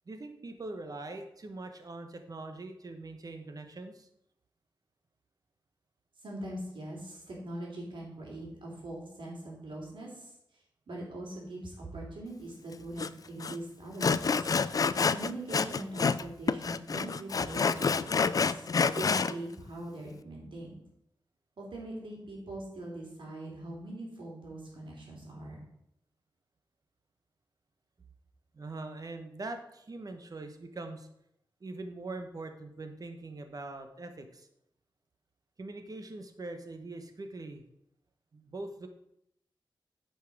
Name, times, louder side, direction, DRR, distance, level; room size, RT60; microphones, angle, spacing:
voice 1, 0.1-4.1 28.5-31.1 31.6-34.5 35.6-37.6 38.3-38.9, right 2 dB, 45° right, 6 dB, 1.1 m, -42 dB
voice 2, 6.2-10.3 10.9-14.5 15.1-18.6 18.9-20.8 21.6-25.6, right 1 dB, 75° right, -2 dB, 3.3 m, -42 dB
Sawing, 13.0-13.1 13.4-13.6 14.0-16.2 16.5-19.3, left 5 dB, 45° left, 0.4 m, -28 dB
9.7 x 5.6 x 4.9 m, 0.78 s
wide cardioid pair, 110°, 9 cm